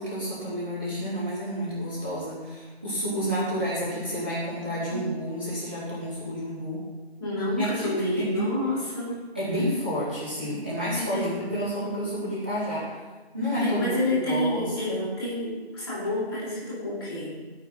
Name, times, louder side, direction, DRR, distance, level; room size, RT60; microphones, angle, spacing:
voice 1, 0.0-6.8 7.6-8.5 9.3-11.2 11.5-12.9 13.3-15.1, equal, 10° right, -14 dB, 1.3 m, -30 dB
voice 2, 7.2-9.1 10.9-11.4 13.6-17.3, left 1 dB, 20° left, -8 dB, 4.5 m, -29 dB
17.0 x 8.2 x 4.2 m, 1.3 s
figure-of-eight pair, 170°, 32 cm